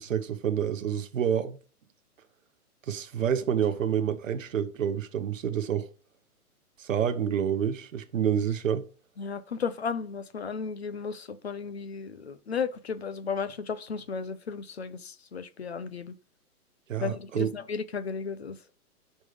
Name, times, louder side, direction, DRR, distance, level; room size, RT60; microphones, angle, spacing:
voice 1, 0.0-1.6 2.9-5.9 6.8-8.9 16.9-17.5, right 8 dB, 55° right, 0.9 m, -28 dB
sound 1, 3.6-5.5, left 1 dB, 70° left, 2.4 m, -60 dB
voice 2, 9.2-16.2 17.0-18.6, left 5 dB, 45° left, 0.5 m, -34 dB
5.3 x 5.1 x 4.9 m
hypercardioid pair, 175°, 46 cm